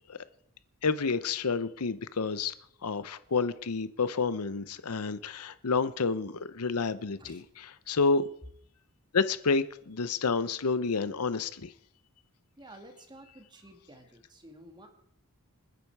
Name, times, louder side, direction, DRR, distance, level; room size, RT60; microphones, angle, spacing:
voice 1, 0.8-2.5 2.8-8.3 9.1-11.7, left 4 dB, 90° left, 14 dB, 0.8 m, -29 dB
voice 2, 12.6-14.9, right 1 dB, 20° right, 5 dB, 2.2 m, -51 dB
27.5 x 10.0 x 4.8 m, 0.69 s
head